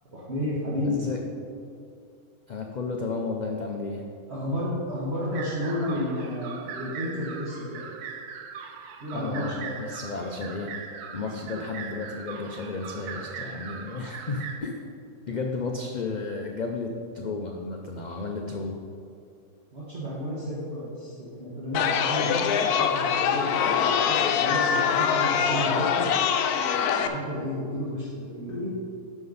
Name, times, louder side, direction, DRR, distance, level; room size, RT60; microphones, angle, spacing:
voice 1, 0.1-1.0 4.3-7.8 9.0-9.7 15.3-15.4 19.7-26.1 26.9-28.8, left 1 dB, 45° right, -7 dB, 1.7 m, -32 dB
voice 2, 0.8-1.2 2.5-4.0 9.1-10.7 11.1-14.8 15.3-18.8, left 3 dB, 65° left, 1 dB, 0.4 m, -33 dB
sound 1, 5.3-14.6, right 6 dB, 85° right, 1.2 m, -40 dB
Chatter, 21.7-27.1, left 7 dB, 85° left, 1.1 m, -24 dB
11.0 x 6.0 x 4.0 m, 2.4 s
omnidirectional pair, 1.6 m